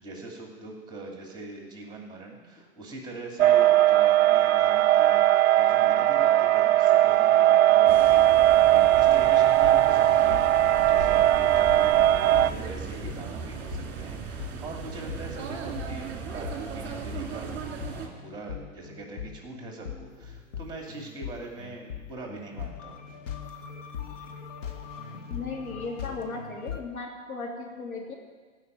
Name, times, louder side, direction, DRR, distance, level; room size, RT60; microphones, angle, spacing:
voice 1, 0.0-10.5 10.8-17.5 17.8-23.0, right 2 dB, 10° right, 0 dB, 2.7 m, -42 dB
sound 1, 3.4-12.5, right 13 dB, 50° right, 0.7 m, -19 dB
sound 2, 7.9-18.1, right 6 dB, 25° right, 2.4 m, -37 dB
sound 3, 9.6-26.8, left 8 dB, 60° left, 1.9 m, -40 dB
voice 2, 25.3-28.1, left 3 dB, 80° left, -1 dB, 3.4 m, -36 dB
15.5 x 6.0 x 9.4 m, 1.4 s
hypercardioid pair, 120°, 42 cm